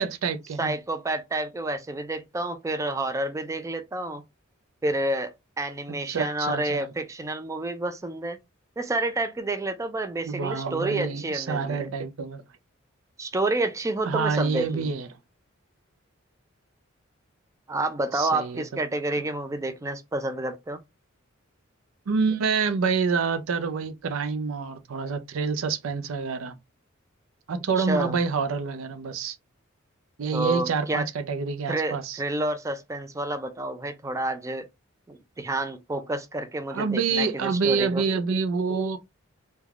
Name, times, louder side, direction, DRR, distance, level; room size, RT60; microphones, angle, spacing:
voice 1, 0.0-0.7 6.1-6.9 10.2-12.4 14.1-15.1 18.1-18.6 22.1-26.5 27.5-29.4 30.2-32.2 36.7-39.0, right 5 dB, 75° right, 0.4 m, -27 dB
voice 2, 0.6-4.2 4.8-8.4 8.8-11.9 13.2-14.9 17.7-20.8 27.5-28.2 30.3-31.1 31.7-34.6 35.1-38.0, right 2 dB, 15° right, 0.3 m, -29 dB
3.2 x 2.2 x 2.3 m
head